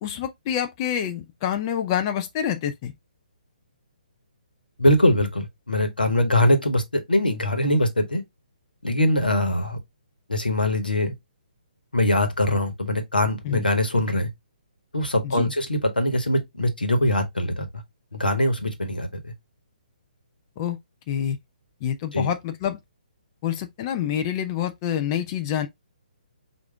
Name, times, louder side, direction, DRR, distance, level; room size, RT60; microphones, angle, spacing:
voice 1, 0.0-2.9 13.4-13.7 15.2-15.5 20.6-20.8 21.1-21.4 21.8-22.8 23.4-25.7, left 9 dB, 30° left, 0.4 m, -27 dB
voice 2, 4.8-8.2 8.8-9.8 10.3-11.1 11.9-14.3 14.9-17.7 18.1-19.1 22.1-22.3, left 1 dB, 85° left, 1.1 m, -22 dB
4.8 x 2.5 x 3.3 m
figure-of-eight pair, 135°, 5 cm